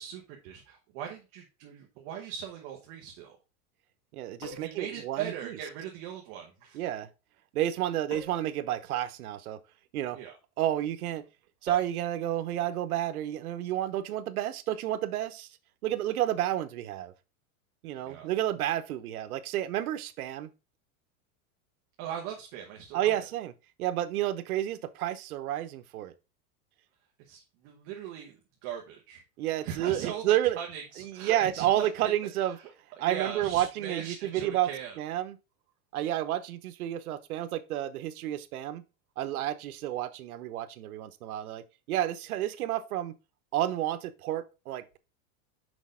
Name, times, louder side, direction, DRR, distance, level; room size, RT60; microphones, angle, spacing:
voice 1, 0.0-3.4 4.6-6.8 10.1-10.3 18.0-18.3 22.0-23.2 27.2-28.3 28.6-29.2 29.6-32.1 32.6-32.7 33.0-35.0, right 9 dB, 30° right, 0.8 m, -40 dB
voice 2, 4.1-5.6 6.7-7.1 7.5-9.6 9.9-10.2 10.6-11.2 11.6-15.5 15.8-17.1 17.8-20.5 22.9-23.5 23.8-26.1 29.4-30.6 31.0-32.6 33.0-34.7 35.0-35.4 35.9-38.8 39.2-43.1 43.5-45.0, right 12 dB, 85° right, 1.0 m, -30 dB
sound 1, 4.4-4.9 8.1-8.6 11.7-12.0, left 3 dB, 40° left, 1.9 m, -44 dB
6.4 x 5.3 x 3.7 m
supercardioid pair, 180°, 43 cm